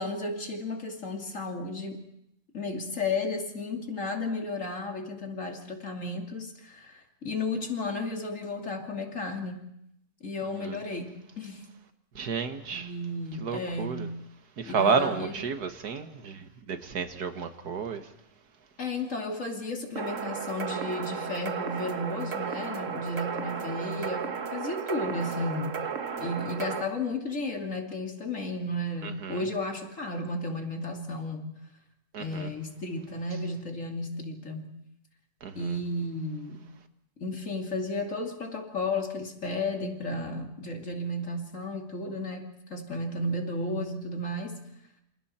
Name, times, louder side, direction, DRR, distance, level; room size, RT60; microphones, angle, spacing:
voice 1, 0.0-2.0 2.5-9.6 10.2-11.6 12.7-14.1 14.7-15.3 18.8-25.8 26.2-31.5 32.2-34.7 35.5-36.6 37.2-44.6, left 2 dB, 55° left, 3.1 m, -33 dB
voice 2, 12.2-12.9 13.4-14.1 14.6-18.1 29.0-29.4 32.1-32.5 35.4-35.8, right 5 dB, 85° right, 2.0 m, -31 dB
sound 1, 20.0-26.8, right 6 dB, 55° right, 1.5 m, -34 dB
28.5 x 27.5 x 4.4 m
omnidirectional pair, 1.6 m